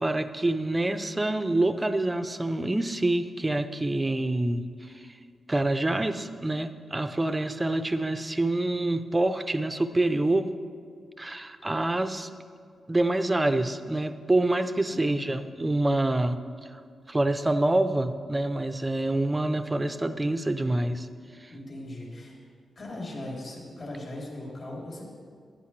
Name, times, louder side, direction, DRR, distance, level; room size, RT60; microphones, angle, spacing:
voice 1, 0.0-4.6 5.5-10.5 11.2-12.3 12.9-16.4 17.1-21.1 21.4-21.5, right 2 dB, 15° right, 9 dB, 0.5 m, -26 dB
voice 2, 14.9-15.5 21.5-22.3 22.7-25.0, left 1 dB, 50° left, -3 dB, 3.2 m, -39 dB
14.0 x 10.5 x 3.2 m, 2.1 s
wide cardioid pair, 120°, 0 cm